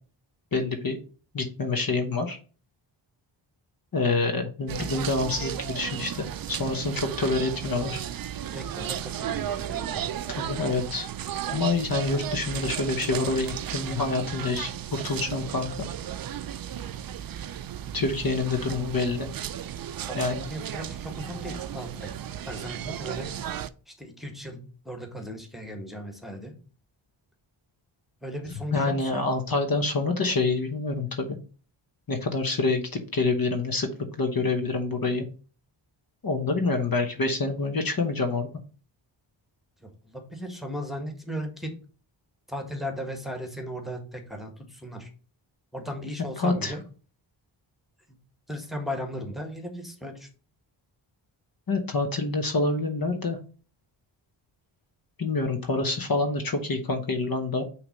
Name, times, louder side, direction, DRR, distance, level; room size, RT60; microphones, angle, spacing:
voice 1, 0.5-1.0 1.3-2.4 3.9-8.0 10.4-11.1 11.5-15.7 17.9-19.3 20.1-20.4 28.7-31.4 32.1-33.9 34.2-35.2 36.2-38.5 46.4-46.7 51.7-53.4 55.2-57.6, left 3 dB, 45° left, 5 dB, 1.2 m, -27 dB
sound 1, 4.7-23.7, right 10 dB, 50° right, 0.5 m, -34 dB
voice 2, 8.5-10.1 20.1-22.1 22.5-23.3 23.9-26.5 28.2-29.2 39.8-41.7 42.5-45.1 45.7-46.8 48.5-50.3, equal, ahead, 5 dB, 1.5 m, -37 dB
5.7 x 3.4 x 5.4 m, 0.38 s
cardioid pair, 65°, 47 cm